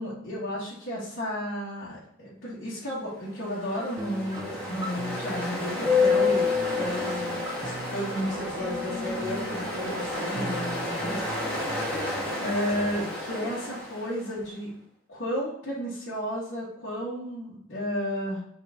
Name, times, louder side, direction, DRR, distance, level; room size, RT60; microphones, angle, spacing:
voice 1, 0.0-11.6 12.4-14.7 15.1-18.4, equal, 60° left, -10 dB, 2.0 m, -33 dB
Ocean, 3.3-14.4, left 3 dB, 5° left, 2.0 m, -30 dB
sound 1, 4.0-13.0, right 1 dB, 20° right, 0.5 m, -41 dB
sound 2, 5.8-10.5, right 1 dB, 50° right, 1.3 m, -44 dB
5.2 x 4.5 x 4.0 m, 0.72 s
head